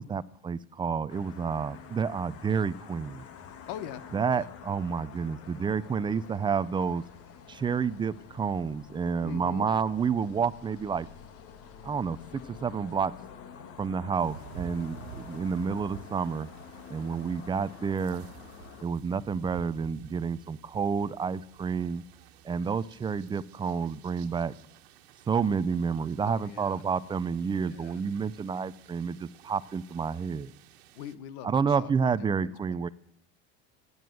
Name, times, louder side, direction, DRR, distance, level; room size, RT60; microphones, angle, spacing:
voice 1, 0.0-3.3 4.1-7.0 7.5-11.1 11.8-12.2 12.6-13.1 13.8-16.5 16.9-18.3 18.8-22.0 22.4-24.5 25.3-30.5 31.4-32.9, right 6 dB, 15° right, 16 dB, 0.5 m, -29 dB
sound 1, 1.1-18.8, left 7 dB, 50° left, 1.7 m, -48 dB
voice 2, 3.7-4.5 9.2-9.7 26.2-26.9 27.6-28.0 30.9-31.9 32.2-32.8, left 10 dB, 65° left, 16 dB, 1.1 m, -43 dB
sound 2, 14.2-31.1, right 9 dB, 85° right, 1.4 m, -51 dB
16.0 x 9.6 x 7.8 m, 0.73 s
supercardioid pair, 125°, 31 cm